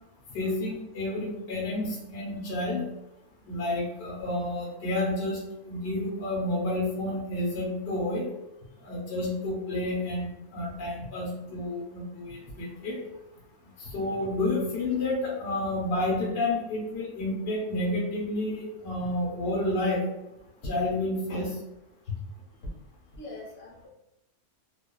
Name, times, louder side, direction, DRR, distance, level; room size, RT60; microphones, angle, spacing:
voice 1, 0.3-2.8 3.5-5.4 5.7-8.3 8.8-13.0 13.8-20.0 20.7-21.5, left 2 dB, 55° left, -4 dB, 1.0 m, -30 dB
voice 2, 13.8-14.3 19.0-19.4 21.3-21.4 22.0-22.2 22.6-22.7 23.1-23.9, left 3 dB, 75° left, -5 dB, 1.1 m, -40 dB
2.4 x 2.3 x 2.2 m, 0.91 s
omnidirectional pair, 1.5 m